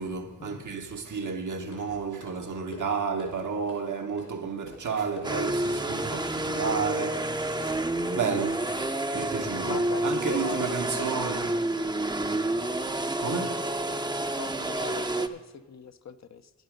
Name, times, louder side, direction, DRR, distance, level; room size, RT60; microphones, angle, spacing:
voice 1, 0.0-8.7 9.1-11.5 13.2-13.7, right 5 dB, 70° right, 1.1 m, -32 dB
sound 1, 1.2-8.9, left 3 dB, 75° left, 3.6 m, -48 dB
sound 2, 5.2-15.3, right 2 dB, 15° right, 0.6 m, -29 dB
voice 2, 9.6-11.3 14.3-16.5, left 6 dB, 60° left, 0.6 m, -41 dB
10.0 x 9.3 x 5.1 m
cardioid pair, 45°, 31 cm